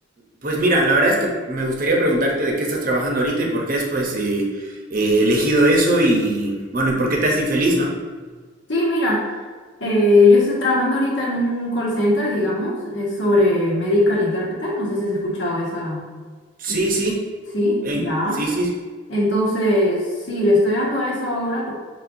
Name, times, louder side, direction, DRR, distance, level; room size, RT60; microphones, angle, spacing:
voice 1, 0.4-7.9 16.6-17.2 17.8-18.1 18.3-18.7, right 1 dB, 45° right, -1 dB, 0.8 m, -20 dB
voice 2, 8.7-9.3 9.8-16.0 16.7-16.8 17.5-18.4 19.1-21.7, left 1 dB, 65° left, -5 dB, 1.3 m, -20 dB
6.0 x 3.2 x 2.6 m, 1.4 s
head